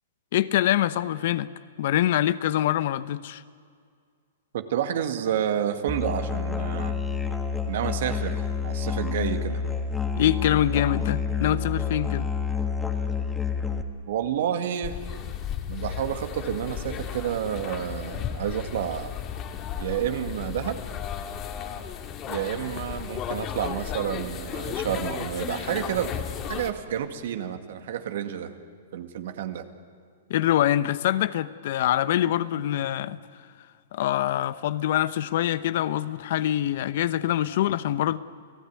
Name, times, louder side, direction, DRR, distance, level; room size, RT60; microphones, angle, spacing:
voice 1, 0.3-1.5 1.8-3.4 10.2-12.3 30.3-33.2 33.9-38.2, left 12 dB, 60° left, 15 dB, 0.8 m, -24 dB
voice 2, 4.5-6.9 7.7-9.6 14.1-15.0 15.7-19.1 19.8-20.8 22.3-26.2 26.5-28.5 28.9-29.6, right 9 dB, 65° right, 7 dB, 2.0 m, -29 dB
Musical instrument, 5.9-13.8, left 5 dB, 5° left, 1.8 m, -28 dB
sound 1, 14.8-26.7, left 8 dB, 30° left, 2.3 m, -34 dB
29.0 x 16.5 x 9.6 m, 2.1 s
hypercardioid pair, 130°, 0 cm